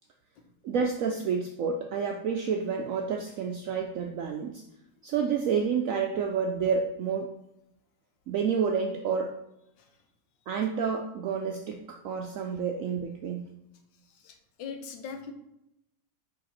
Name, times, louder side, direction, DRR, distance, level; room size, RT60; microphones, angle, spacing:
voice 1, 0.6-4.6 5.0-7.4 8.3-9.4 10.5-13.5, right 6 dB, 75° right, 3 dB, 0.7 m, -29 dB
voice 2, 14.1-15.3, left 6 dB, 90° left, 6 dB, 1.5 m, -41 dB
5.0 x 4.8 x 4.2 m, 0.83 s
omnidirectional pair, 1.9 m